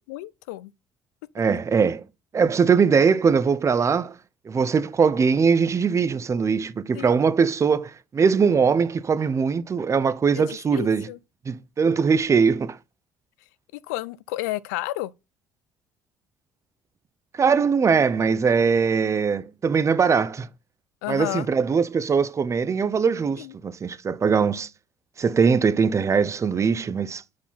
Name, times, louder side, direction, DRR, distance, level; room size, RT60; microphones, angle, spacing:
voice 1, 0.1-0.7 6.9-7.3 10.3-11.2 13.7-15.1 21.0-21.5 23.4-23.5, left 17 dB, 85° left, 0.4 m, -32 dB
voice 2, 1.4-2.0 2.3-4.1 4.5-11.1 11.5-12.8 17.4-20.5 21.1-24.7 25.2-27.2, right 5 dB, 35° right, 0.7 m, -21 dB
5.6 x 4.8 x 4.1 m
hypercardioid pair, 65°, 9 cm